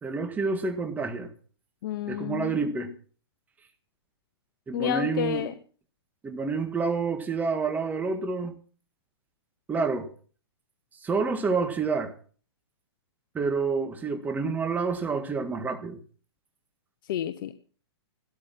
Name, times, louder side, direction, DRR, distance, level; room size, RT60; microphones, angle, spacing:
voice 1, 0.0-1.3 2.1-2.9 4.7-5.4 6.2-8.6 9.7-10.1 11.0-12.1 13.3-16.0, right 4 dB, 10° right, 1.8 m, -28 dB
voice 2, 1.8-2.9 4.7-5.5 17.1-17.5, left 11 dB, 55° left, 1.0 m, -30 dB
15.0 x 12.5 x 6.0 m
hypercardioid pair, 140°, 14 cm